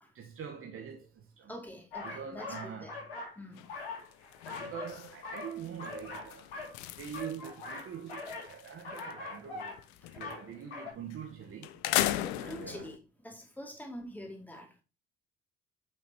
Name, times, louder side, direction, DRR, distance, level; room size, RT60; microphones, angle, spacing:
voice 1, 0.1-1.5 2.0-3.0 4.6-6.5 7.0-9.8 10.2-11.8 12.4-12.9, right 7 dB, 45° right, 1.2 m, -44 dB
voice 2, 1.5-2.9 3.4-3.7 12.2-14.8, left 1 dB, 5° left, 2.4 m, -45 dB
sound 1, 1.9-3.4 3.6-5.0 5.2-6.8 7.0-8.5 8.8-9.8 10.1-10.4 10.7-10.9, left 3 dB, 85° left, 2.6 m, -42 dB
sound 2, 3.5-3.8 4.1-9.1 9.5-10.6 11.1-11.2 11.6-13.0, left 14 dB, 65° left, 0.7 m, -37 dB
8.4 x 5.9 x 2.9 m
hypercardioid pair, 55°, 30 cm